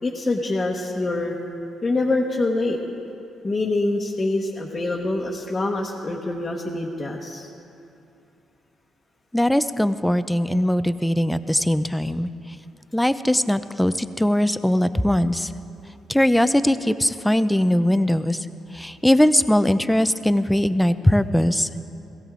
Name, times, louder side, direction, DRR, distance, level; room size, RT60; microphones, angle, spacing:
voice 1, 0.0-1.4 1.8-2.8 3.4-7.5, left 2 dB, 25° left, -4 dB, 1.2 m, -25 dB
voice 2, 9.3-12.3 12.9-15.5 16.1-18.4 18.7-21.7, left 1 dB, 5° left, 12 dB, 0.5 m, -20 dB
16.5 x 16.5 x 3.8 m, 2.7 s
cardioid pair, 90°, 0 cm